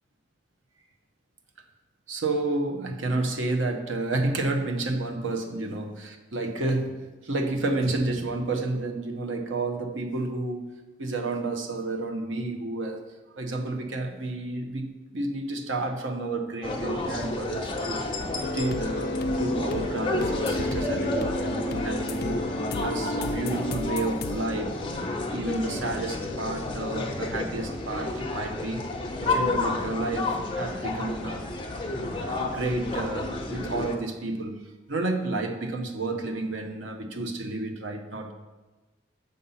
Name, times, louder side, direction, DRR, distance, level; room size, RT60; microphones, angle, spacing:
voice 1, 2.1-10.6 11.0-13.0 13.3-18.0 18.5-24.8 25.3-31.5 32.2-38.3, right 2 dB, 90° right, 4 dB, 0.9 m, -30 dB
sound 1, 16.6-34.0, left 2 dB, 25° left, 0.8 m, -31 dB
sound 2, 18.4-25.7, left 1 dB, 55° left, 0.4 m, -32 dB
6.7 x 5.5 x 5.6 m, 1.2 s
head